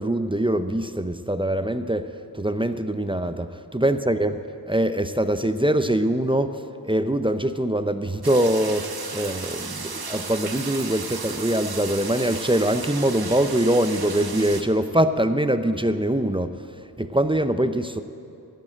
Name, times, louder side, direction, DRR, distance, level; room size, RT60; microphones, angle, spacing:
voice 1, 0.0-3.5 3.7-16.7 17.0-18.0, right 1 dB, 15° right, 10 dB, 0.6 m, -23 dB
sound 1, 8.2-14.6, right 4 dB, 70° right, 1.0 m, -34 dB
14.0 x 9.1 x 8.7 m, 2.6 s
wide cardioid pair, 65°, 39 cm